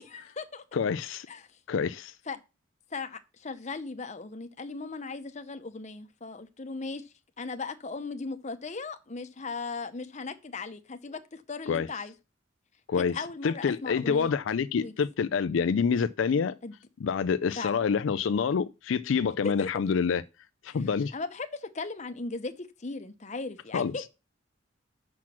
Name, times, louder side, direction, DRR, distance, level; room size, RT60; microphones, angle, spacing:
voice 1, 0.0-0.6 1.3-1.6 2.3-2.4 2.9-12.1 13.1-14.3 14.8-14.9 16.6-16.7 17.6-17.9 19.4-19.7 20.7-20.8 21.1-24.1, left 4 dB, 40° left, 0.8 m, -37 dB
voice 2, 0.7-1.3 1.7-2.2 11.7-11.9 12.9-13.1 13.4-16.6 17.0-20.2 20.6-21.1 23.7-24.1, left 6 dB, 80° left, 0.4 m, -27 dB
6.0 x 6.0 x 6.0 m
head